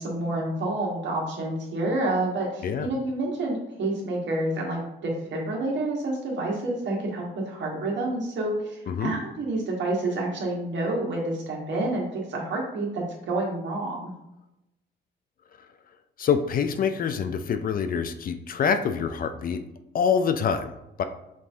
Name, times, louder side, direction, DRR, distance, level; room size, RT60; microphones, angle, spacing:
voice 1, 0.0-14.1, right 2 dB, 65° right, -2 dB, 1.5 m, -29 dB
voice 2, 16.2-19.6 19.9-21.0, left 6 dB, 45° left, 9 dB, 0.4 m, -26 dB
5.3 x 2.7 x 3.4 m, 0.87 s
cardioid pair, 90°, 20 cm